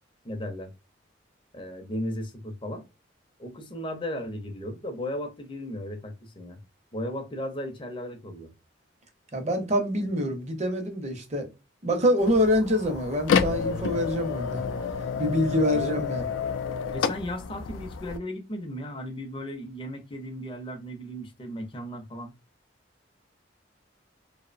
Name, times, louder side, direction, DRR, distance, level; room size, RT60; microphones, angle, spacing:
voice 1, 0.2-0.7 1.5-2.8 3.4-6.6 6.9-8.5 15.7-16.1 16.9-22.3, left 1 dB, 25° left, 0.5 m, -35 dB
voice 2, 9.3-11.5 11.8-14.6 15.2-16.2, equal, 35° right, 0.6 m, -25 dB
sound 1, 12.2-18.2, left 6 dB, 85° left, 0.3 m, -29 dB
2.7 x 2.0 x 2.4 m
head